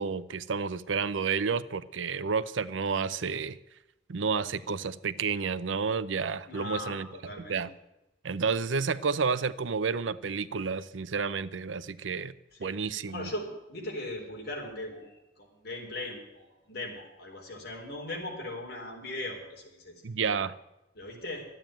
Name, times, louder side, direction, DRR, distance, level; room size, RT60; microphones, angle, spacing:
voice 1, 0.0-3.6 4.1-7.1 7.4-7.7 8.2-12.3 12.6-13.3 20.0-20.6, right 5 dB, 85° right, 15 dB, 0.6 m, -30 dB
voice 2, 6.4-7.7 12.5-20.0 20.9-21.5, left 1 dB, 55° left, 0 dB, 4.0 m, -39 dB
12.5 x 8.9 x 9.1 m, 0.95 s
head